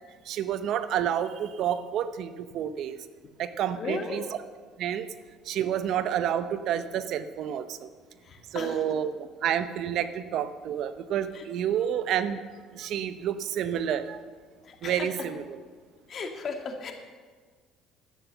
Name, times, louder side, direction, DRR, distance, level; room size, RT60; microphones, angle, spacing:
voice 1, 0.3-3.0 3.4-4.2 4.8-5.1 5.5-7.9 8.5-12.4 12.7-14.2 14.8-15.4, right 9 dB, 65° right, 12 dB, 0.7 m, -29 dB
voice 2, 3.8-4.3 8.2-8.8 11.3-11.5 14.6-15.3 16.1-16.9, left 4 dB, 45° left, 4 dB, 2.0 m, -36 dB
11.5 x 9.2 x 6.9 m, 1.5 s
cardioid pair, 105°, 0 cm